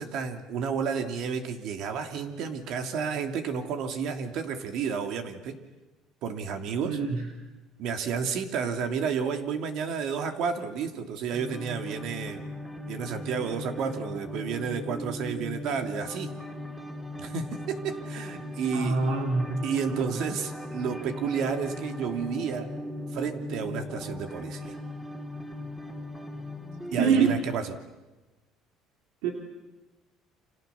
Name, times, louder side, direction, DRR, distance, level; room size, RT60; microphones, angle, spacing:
voice 1, 0.0-5.6 6.2-7.0 7.8-12.4 12.9-16.3 17.2-19.0 19.6-22.7 23.1-24.8 26.9-27.7, right 6 dB, 60° right, 6 dB, 3.0 m, -31 dB
voice 2, 6.8-7.2 18.7-19.6 27.0-27.3 29.2-29.3, right 5 dB, 90° right, 2 dB, 3.4 m, -24 dB
sound 1, 11.3-27.4, left 1 dB, 5° right, 3.9 m, -38 dB
30.0 x 26.5 x 7.1 m, 1.1 s
cardioid pair, 135°, 0 cm